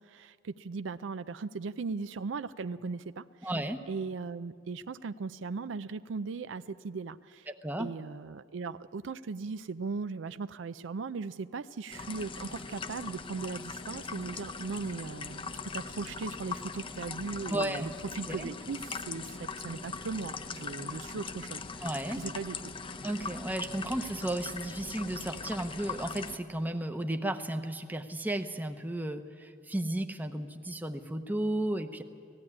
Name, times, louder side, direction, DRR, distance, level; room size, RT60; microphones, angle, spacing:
voice 1, 0.1-3.5 3.9-7.5 7.8-22.7, right 4 dB, 70° right, 13 dB, 0.4 m, -38 dB
voice 2, 3.4-3.8 7.6-7.9 17.5-17.9 18.3-18.5 21.8-22.2 23.0-32.0, right 1 dB, 10° right, 7 dB, 0.8 m, -34 dB
sound 1, 11.9-26.4, left 4 dB, 25° left, 0.6 m, -40 dB
18.0 x 15.0 x 9.8 m, 2.2 s
head